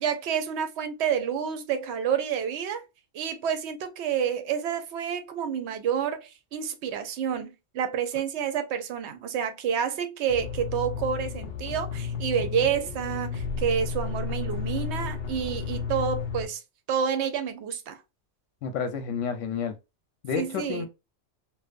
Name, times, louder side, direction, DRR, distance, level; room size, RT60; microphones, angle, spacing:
voice 1, 0.0-2.8 3.1-16.6 16.9-18.0 20.3-20.9, right 8 dB, 70° right, 0.8 m, -29 dB
sound 1, 10.3-16.5, left 6 dB, 60° left, 0.5 m, -32 dB
voice 2, 18.6-19.8 20.2-20.9, left 6 dB, 80° left, 0.9 m, -30 dB
2.6 x 2.2 x 2.3 m
omnidirectional pair, 1.3 m